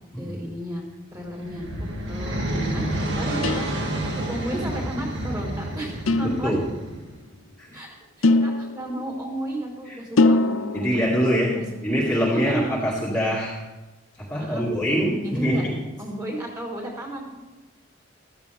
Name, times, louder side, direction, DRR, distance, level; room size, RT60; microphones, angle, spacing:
voice 1, 0.2-0.8 1.1-2.8 3.1-3.7 4.0-6.6 7.7-12.0 12.3-12.8 14.4-14.7 15.2-15.6 16.0-17.3, right 1 dB, 20° right, -2 dB, 4.1 m, -33 dB
sound 1, 1.2-7.2, right 1 dB, 60° right, 2.4 m, -29 dB
sound 2, 3.4-4.3 6.1-6.9 8.2-9.3 10.2-11.2, left 2 dB, 85° left, 0.7 m, -23 dB
voice 2, 6.2-6.6 7.6-7.8 9.9-10.0 10.7-13.6 14.2-15.7, equal, 5° left, -7 dB, 2.2 m, -24 dB
15.0 x 14.0 x 3.5 m, 1.1 s
head